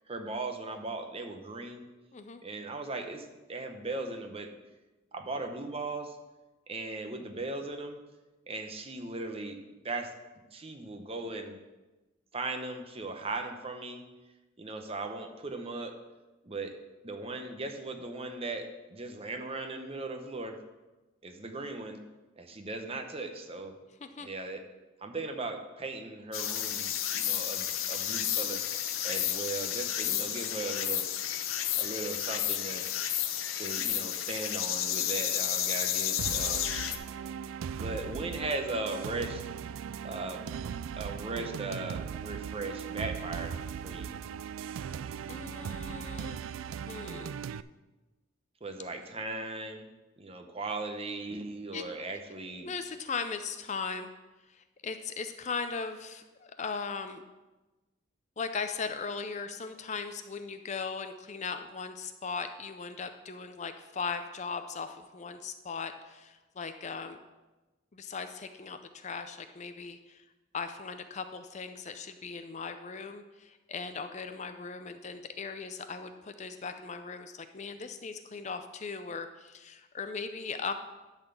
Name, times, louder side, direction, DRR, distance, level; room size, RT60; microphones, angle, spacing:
voice 1, 0.1-1.9 2.4-4.5 5.1-6.2 6.7-8.0 8.5-9.6 9.8-11.6 12.3-14.0 14.6-15.9 16.4-16.7 17.0-20.6 21.2-22.0 22.4-23.7 24.2-24.6 25.0-28.6 29.0-31.0 31.7-32.9 33.5-36.7 37.7-39.4 40.0-40.4 41.0-43.6 43.8-44.2 48.6-49.9 50.2-52.7, right 2 dB, 30° right, 5 dB, 0.8 m, -38 dB
voice 2, 2.1-2.4 24.0-24.3 45.3-46.4 46.9-47.4 51.7-51.8 52.6-54.1 54.5-57.2 58.4-67.2 67.9-70.2 70.5-80.7, left 5 dB, 35° left, 8 dB, 0.5 m, -38 dB
sound 1, 26.3-37.0, left 10 dB, 90° left, 0.7 m, -31 dB
sound 2, 36.2-47.6, right 7 dB, 80° right, 0.3 m, -38 dB
11.0 x 4.1 x 6.9 m, 1.1 s
head